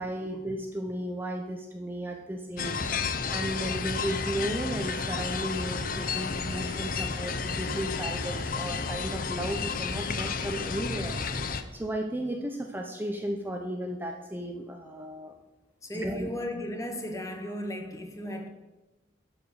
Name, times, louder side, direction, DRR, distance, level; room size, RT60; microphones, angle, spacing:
voice 1, 0.0-15.3 15.9-16.3, right 1 dB, 10° right, 0.6 m, -35 dB
sound 1, 2.6-11.6, left 5 dB, 50° left, 0.6 m, -32 dB
voice 2, 15.8-18.5, left 1 dB, 20° left, 1.1 m, -35 dB
11.5 x 4.9 x 6.7 m
head